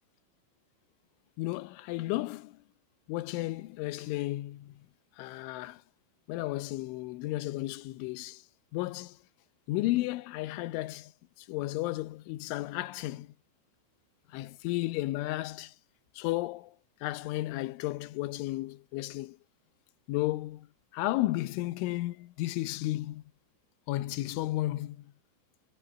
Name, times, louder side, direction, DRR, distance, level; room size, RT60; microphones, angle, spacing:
voice 1, 1.4-2.6 3.1-4.8 5.2-5.8 6.3-8.4 8.7-9.2 9.7-11.1 11.4-13.3 14.3-15.7 16.2-16.8 17.0-19.4 20.1-20.7 20.9-23.2 23.9-25.1, left 17 dB, 80° left, 3.4 m, -33 dB
omnidirectional pair, 5.7 m